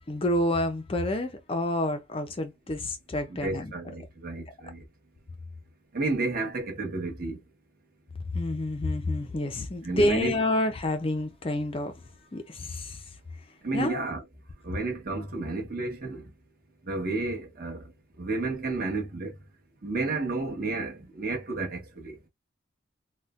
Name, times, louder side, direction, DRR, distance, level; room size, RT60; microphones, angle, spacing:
voice 1, 0.1-3.7 8.3-11.9 12.3-13.0 13.7-14.0, left 1 dB, 25° left, 0.4 m, -28 dB
voice 2, 3.3-4.8 5.9-7.4 9.8-10.4 13.6-14.2 14.6-16.3 16.9-17.9 18.2-19.3 19.8-22.2, right 3 dB, 45° right, 1.1 m, -31 dB
4.0 x 2.1 x 2.4 m
head